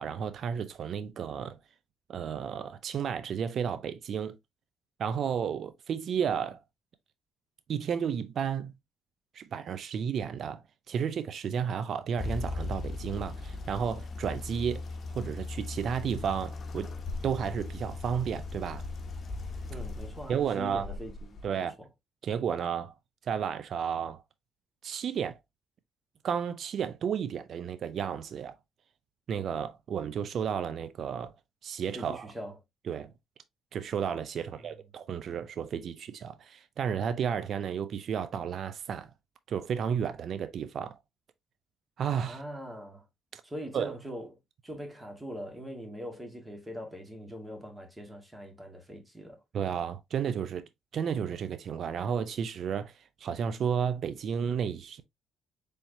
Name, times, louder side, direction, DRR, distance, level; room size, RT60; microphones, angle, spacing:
voice 1, 0.0-1.6 2.1-4.4 5.0-6.6 7.7-8.7 9.3-10.6 10.9-14.9 15.1-16.9 17.2-18.9 20.3-20.9 21.4-21.7 22.2-22.9 23.3-24.2 24.8-25.4 26.2-28.5 29.3-31.3 31.6-32.3 32.9-33.1 33.7-39.1 39.5-41.0 42.0-42.4 43.3-43.4 43.7-44.0 49.5-52.9 53.2-55.0, right 7 dB, 60° right, 0.5 m, -32 dB
sound 1, 12.2-21.5, left 3 dB, 45° left, 0.9 m, -38 dB
voice 2, 19.7-21.9 31.9-32.6 34.5-34.7 42.3-43.1 43.4-49.4, equal, 15° right, 1.8 m, -42 dB
4.2 x 3.5 x 2.6 m
supercardioid pair, 60°, 0 cm